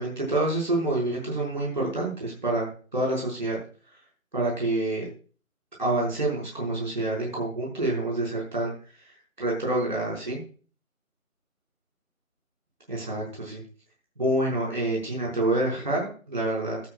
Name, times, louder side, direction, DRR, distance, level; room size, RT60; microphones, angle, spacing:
voice 1, 0.0-3.6 4.3-5.1 5.8-8.7 9.4-10.4 12.9-13.6 14.2-16.8, right 2 dB, 35° right, -3 dB, 5.8 m, -27 dB
17.5 x 11.5 x 2.5 m, 0.39 s
figure-of-eight pair, 170°, 41 cm